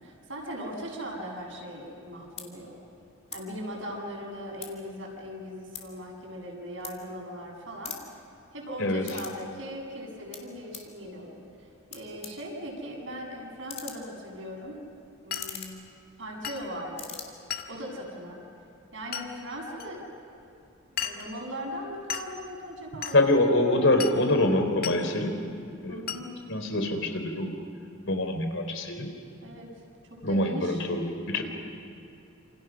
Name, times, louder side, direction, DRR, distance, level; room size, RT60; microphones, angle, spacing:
voice 1, 0.0-2.8 3.3-8.0 8.5-11.4 11.9-14.8 15.2-15.8 16.2-17.1 17.7-18.4 18.9-20.0 20.9-23.4 25.9-26.4 29.4-29.7 30.1-30.8, equal, 70° right, -1 dB, 7.5 m, -39 dB
sound 1, 1.8-2.0 2.3-2.5 3.2-3.4 3.8-4.9 5.3-7.4 7.7-9.4 9.7-10.9 11.6-11.7 11.9-16.6 16.8-17.2, left 7 dB, 30° left, 3.0 m, -43 dB
Glass, 15.3-15.5 16.4-16.7 17.5-17.8 19.1-19.3 19.8-19.9 21.0-21.3 22.1-22.3 23.0-23.2 24.0-24.2 24.8-25.0 26.1-26.3, left 9 dB, 50° left, 1.7 m, -34 dB
voice 2, 23.1-25.4 25.8-26.1 26.5-27.5 28.1-29.1 30.2-31.4, left 1 dB, 70° left, 5 dB, 3.7 m, -25 dB
29.0 x 28.0 x 6.3 m, 2.7 s
head